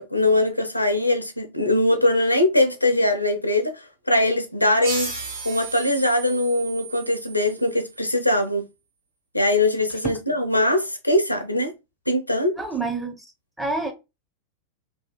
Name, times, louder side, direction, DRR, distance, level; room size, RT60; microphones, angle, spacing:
voice 1, 0.0-5.1 5.4-8.6 9.3-11.7 12.1-12.6, left 1 dB, 85° left, 0.4 m, -21 dB
sound 1, 4.8-8.0, right 3 dB, 80° right, 1.4 m, -34 dB
voice 2, 12.6-13.1 13.6-13.9, right 3 dB, 5° right, 0.6 m, -27 dB
2.6 x 2.3 x 2.3 m
figure-of-eight pair, 90°, 0 cm